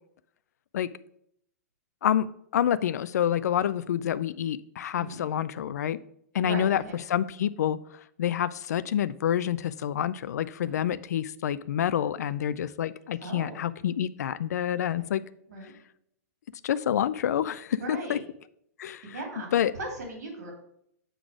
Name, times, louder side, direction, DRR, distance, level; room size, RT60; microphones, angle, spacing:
voice 1, 2.0-6.0 6.3-6.8 7.1-7.8 8.2-15.2 16.6-18.2 18.8-19.0 19.5-19.7, left 10 dB, 90° left, 16 dB, 0.4 m, -27 dB
voice 2, 6.4-7.0 10.6-10.9 13.2-13.6 15.0-15.1 15.5-15.7 17.8-18.2 19.1-19.5 19.7-20.5, right 2 dB, 85° right, 1 dB, 2.7 m, -38 dB
7.9 x 4.0 x 4.8 m, 0.71 s
hypercardioid pair, 155°, 9 cm